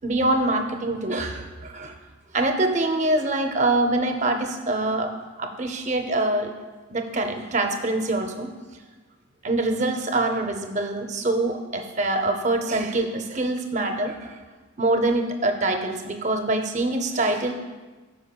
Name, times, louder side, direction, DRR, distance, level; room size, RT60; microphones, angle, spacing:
voice 1, 0.0-1.9 2.3-5.1 5.4-6.5 6.9-8.5 9.4-14.3 14.8-17.5, right 2 dB, 35° right, 5 dB, 0.5 m, -24 dB
13.5 x 4.8 x 2.2 m, 1.3 s
head